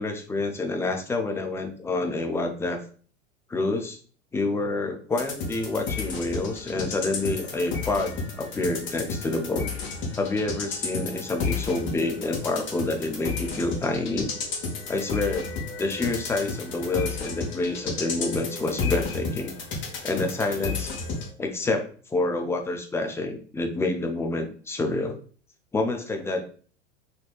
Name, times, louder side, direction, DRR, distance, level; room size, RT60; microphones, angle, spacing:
voice 1, 0.0-2.8 3.5-4.0 4.3-9.7 10.2-14.3 14.9-15.5 15.8-19.5 20.0-20.9 21.4-25.2 25.7-26.4, left 2 dB, 10° left, 4 dB, 0.3 m, -28 dB
sound 1, 5.1-21.3, left 4 dB, 35° left, 1.1 m, -32 dB
4.1 x 2.7 x 2.4 m, 0.43 s
hypercardioid pair, 85°, 36 cm